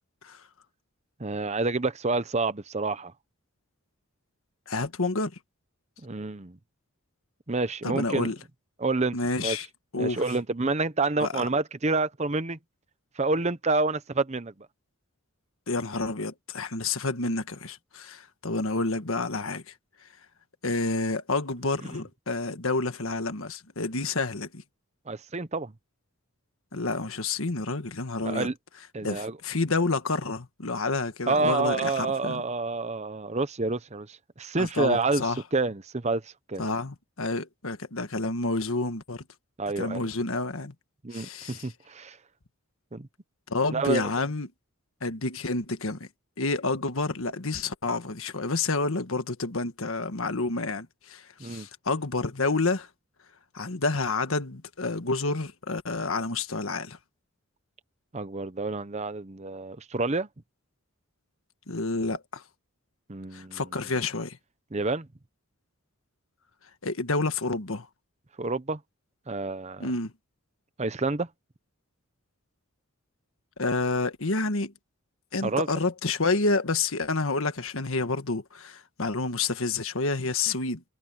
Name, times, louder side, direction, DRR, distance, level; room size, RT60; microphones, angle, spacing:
voice 1, 1.2-3.1 6.0-6.6 7.5-8.3 8.8-9.6 10.0-12.6 13.2-14.5 25.1-25.7 28.2-28.5 28.9-29.4 31.3-35.2 35.5-36.6 39.6-40.1 41.0-42.2 42.9-43.1 43.7-44.1 51.4-51.7 58.1-60.3 63.1-63.6 64.7-65.1 68.4-68.8 69.3-69.9 70.8-71.3 75.4-75.7, right 3 dB, 30° right, 0.9 m, -28 dB
voice 2, 4.7-5.3 7.8-8.4 9.1-9.7 9.9-10.2 11.2-11.4 15.7-19.7 20.6-24.6 26.7-28.5 29.0-32.4 34.6-35.4 36.6-39.2 39.8-40.7 41.1-41.7 43.5-44.5 45.0-46.1 46.4-52.9 53.5-57.0 61.7-62.4 63.3-64.4 66.8-67.9 69.8-70.1 73.6-74.7 75.3-80.8, left 3 dB, 70° left, 1.6 m, -29 dB
head